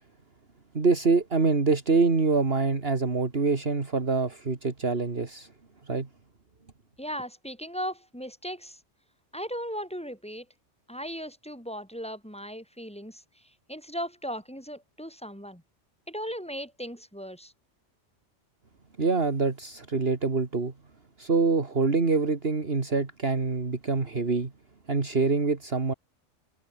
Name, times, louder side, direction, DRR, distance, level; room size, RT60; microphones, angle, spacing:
voice 1, 0.7-5.5 5.9-6.1 19.0-20.7 21.2-24.5 24.9-25.9, right 4 dB, 55° right, 2.5 m, -25 dB
voice 2, 7.0-8.8 9.3-10.5 10.9-15.6 16.1-17.5, equal, 5° left, 5.5 m, -37 dB
omnidirectional pair, 1.2 m